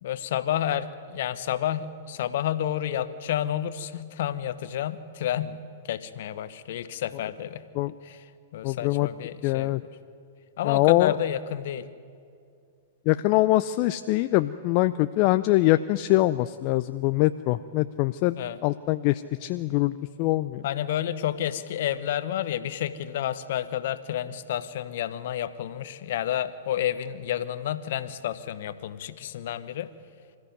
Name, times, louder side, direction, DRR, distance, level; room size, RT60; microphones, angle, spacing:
voice 1, 0.0-7.6 8.0-8.3 8.5-9.9 10.6-11.9 18.4-18.6 20.6-29.9, left 11 dB, 60° left, 13 dB, 1.1 m, -30 dB
voice 2, 8.6-9.1 9.4-9.8 10.7-11.1 13.1-18.3 18.6-20.6, left 17 dB, 45° left, 12 dB, 0.5 m, -23 dB
25.0 x 14.0 x 9.5 m, 2.4 s
hypercardioid pair, 105°, 0 cm